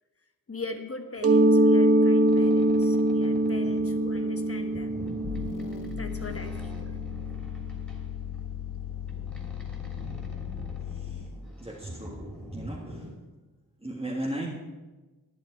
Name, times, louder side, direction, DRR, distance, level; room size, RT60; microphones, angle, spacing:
voice 1, 0.5-5.0 6.0-6.9, left 3 dB, 40° left, 7 dB, 1.2 m, -41 dB
Mallet percussion, 1.2-6.8, right 1 dB, 40° right, 1.1 m, -23 dB
Boat Water vehicle, 2.3-13.1, equal, 5° left, 3.1 m, -44 dB
sound 1, 5.2-11.4, left 10 dB, 60° left, 0.6 m, -37 dB
voice 2, 11.6-12.2 12.5-12.8 13.8-14.5, right 1 dB, 15° right, -5 dB, 1.8 m, -34 dB
11.5 x 10.5 x 4.7 m, 1.2 s
wide cardioid pair, 65°, 37 cm